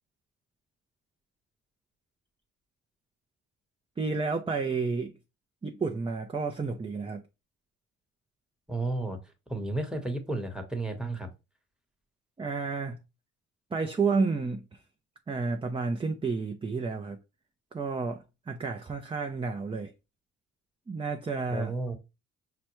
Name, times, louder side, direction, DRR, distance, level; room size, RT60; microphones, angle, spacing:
voice 1, 4.0-5.1 5.6-7.2 12.4-13.0 13.7-14.8 15.3-17.2 17.7-19.9 20.9-21.7, right 4 dB, 20° right, 0.5 m, -31 dB
voice 2, 8.7-9.2 9.5-11.3 21.5-21.9, right 2 dB, 5° right, 1.1 m, -32 dB
5.8 x 2.2 x 3.0 m
cardioid pair, 90°, 30 cm